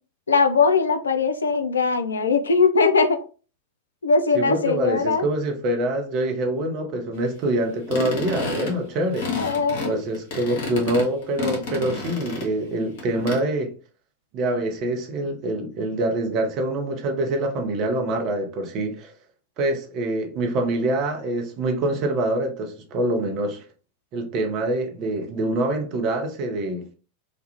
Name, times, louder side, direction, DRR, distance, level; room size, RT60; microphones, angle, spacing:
voice 1, 0.3-3.2 4.0-5.3 9.4-9.9, left 4 dB, 70° left, 0.3 m, -20 dB
voice 2, 4.3-9.3 9.8-13.7 14.3-19.1 19.6-23.6 24.1-26.9, right 1 dB, 40° right, 0.6 m, -25 dB
sound 1, 7.9-12.7 13.0-13.4, left 4 dB, 50° left, 0.7 m, -30 dB
2.3 x 2.1 x 2.8 m
figure-of-eight pair, 90°, 0 cm